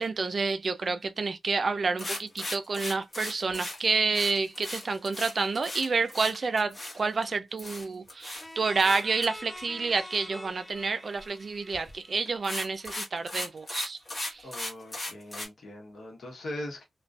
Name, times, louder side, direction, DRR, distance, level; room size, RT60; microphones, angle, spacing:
voice 1, 0.0-14.5, right 4 dB, 55° right, 0.4 m, -29 dB
sound 1, 2.0-7.3 7.6-8.5 8.8-9.3 11.7-11.9 12.3-15.5, left 1 dB, 40° left, 1.1 m, -37 dB
sound 2, 8.4-13.0, left 1 dB, 15° left, 0.5 m, -46 dB
voice 2, 14.4-16.8, left 1 dB, 70° left, 1.0 m, -40 dB
2.5 x 2.2 x 2.3 m
cardioid pair, 70°, 0 cm